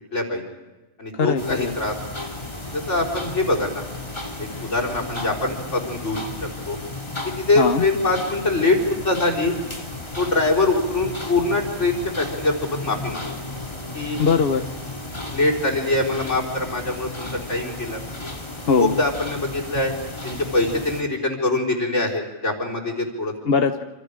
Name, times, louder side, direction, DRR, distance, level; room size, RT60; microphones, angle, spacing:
voice 1, 0.1-0.4 1.0-2.0 2.7-3.8 4.4-6.8 7.2-9.5 10.2-13.2 13.9-14.2 15.3-18.0 18.8-19.9 20.2-23.3, left 2 dB, 75° left, -1 dB, 4.4 m, -23 dB
voice 2, 1.1-1.8 7.6-7.8 14.2-14.6 18.6-19.0 23.5-23.8, left 5 dB, 55° left, 6 dB, 1.1 m, -20 dB
sound 1, 1.4-21.0, left 2 dB, 25° left, 2.4 m, -34 dB
27.5 x 27.0 x 5.0 m, 1.2 s
omnidirectional pair, 1.2 m